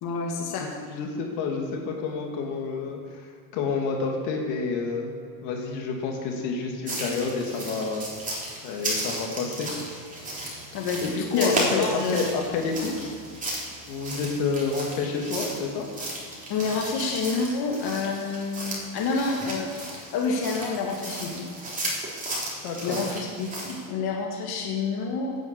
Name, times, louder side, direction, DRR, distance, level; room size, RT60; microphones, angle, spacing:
voice 1, 0.0-0.8 10.7-11.0 11.3-12.2 16.5-19.7 20.1-21.5 22.8-25.4, left 4 dB, 50° left, 0 dB, 2.1 m, -28 dB
voice 2, 0.6-3.2 3.5-5.1 5.4-8.3 8.6-9.7 11.0-13.1 13.9-15.9 22.6-23.1, left 4 dB, 75° left, 1 dB, 2.6 m, -29 dB
sound 1, 6.9-23.9, right 1 dB, 15° right, 3.8 m, -34 dB
10.5 x 8.7 x 8.3 m, 2.1 s
supercardioid pair, 120°, 47 cm